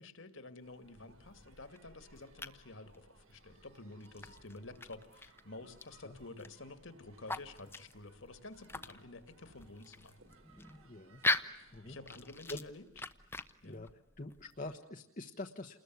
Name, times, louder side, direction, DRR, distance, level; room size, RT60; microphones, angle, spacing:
voice 1, 0.0-10.2 11.9-12.8 13.6-13.9, left 2 dB, 60° left, 9 dB, 2.4 m, -51 dB
sound 1, 0.6-14.7, left 2 dB, 10° left, 1.0 m, -43 dB
sound 2, 0.6-12.2, right 3 dB, 65° right, 3.6 m, -66 dB
voice 2, 10.8-11.2 11.7-12.0 12.5-12.6 13.6-13.9 14.2-15.8, left 2 dB, 40° left, 4 dB, 1.2 m, -45 dB
29.5 x 21.0 x 9.5 m, 0.94 s
head